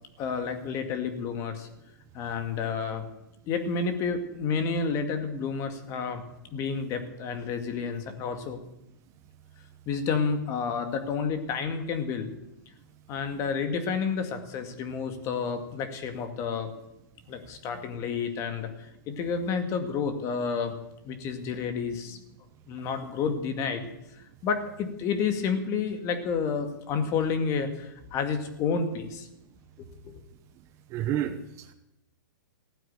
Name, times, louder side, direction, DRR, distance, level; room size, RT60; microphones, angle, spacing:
voice 1, 0.2-1.7 2.1-3.1 3.5-6.2 6.5-8.6 9.9-12.3 13.1-16.7 17.3-20.8 21.0-22.2 22.7-23.9 24.4-29.3 29.8-30.2, left 5 dB, 25° left, 7 dB, 2.1 m, -30 dB
voice 2, 30.9-31.7, right 11 dB, 25° right, 9 dB, 1.0 m, -30 dB
16.0 x 9.1 x 9.0 m, 0.87 s
hypercardioid pair, 150°, 11 cm